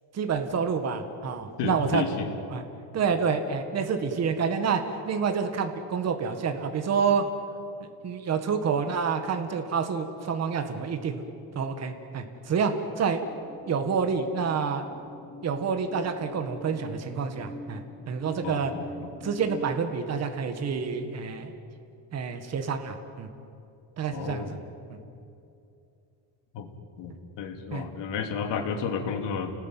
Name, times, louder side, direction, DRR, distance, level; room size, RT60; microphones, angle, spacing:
voice 1, 0.1-2.0 2.5-2.6 2.9-7.2 8.0-11.2 11.6-13.2 13.7-14.8 15.4-17.8 18.1-18.7 19.2-21.5 22.1-23.3 24.0-24.6 27.7-27.8, right 6 dB, 35° right, 6 dB, 1.8 m, -28 dB
voice 2, 1.6-2.3 18.4-19.1 24.1-24.6 26.5-26.7 27.0-29.5, left 6 dB, 70° left, 4 dB, 3.1 m, -32 dB
sound 1, 13.2-19.9, left 1 dB, 10° left, 1.1 m, -45 dB
29.5 x 19.5 x 9.2 m, 2.7 s
cardioid pair, 170°, 45 cm